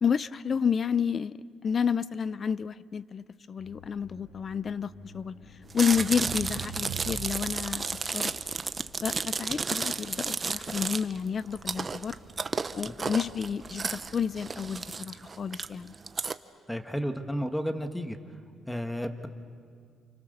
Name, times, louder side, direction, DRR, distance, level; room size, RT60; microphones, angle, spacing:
voice 1, 0.0-1.4 1.6-5.4 5.7-8.3 9.0-12.2 12.8-15.9, left 7 dB, 45° left, 18 dB, 0.6 m, -30 dB
sound 1, 3.6-14.8, left 2 dB, 90° left, 7.0 m, -54 dB
Chewing mastication, 5.7-16.3, right 4 dB, 35° right, 0.9 m, -33 dB
sound 2, 6.0-8.5, right 5 dB, 90° right, 2.1 m, -40 dB
voice 2, 16.7-18.2 18.7-19.3, equal, 5° left, 7 dB, 1.7 m, -32 dB
29.5 x 28.5 x 6.8 m, 2.2 s
cardioid pair, 90°, 0 cm